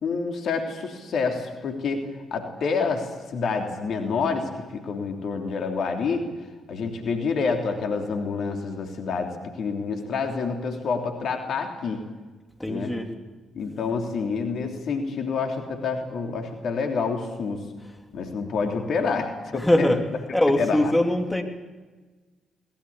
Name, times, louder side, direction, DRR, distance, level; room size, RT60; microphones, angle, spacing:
voice 1, 0.0-6.3 6.7-12.1 12.7-13.0 13.5-17.7 18.1-19.9 20.5-20.9, left 4 dB, 60° left, 3 dB, 3.1 m, -28 dB
voice 2, 12.6-13.1 19.5-20.0 20.3-21.4, left 1 dB, 10° left, 3 dB, 3.4 m, -22 dB
22.5 x 20.0 x 8.5 m, 1.3 s
figure-of-eight pair, 40°, 0 cm